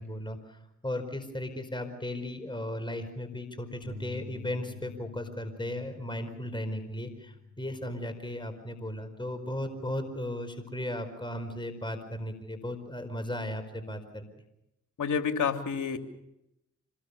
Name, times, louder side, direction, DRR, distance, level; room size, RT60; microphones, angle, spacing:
voice 1, 0.0-14.2, left 1 dB, 15° left, 8 dB, 4.8 m, -36 dB
Bass guitar, 3.8-10.1, left 3 dB, 50° right, 5.8 m, -49 dB
voice 2, 15.0-16.0, left 6 dB, 60° left, 5 dB, 3.1 m, -28 dB
27.0 x 20.5 x 7.0 m, 0.85 s
supercardioid pair, 55°, 33 cm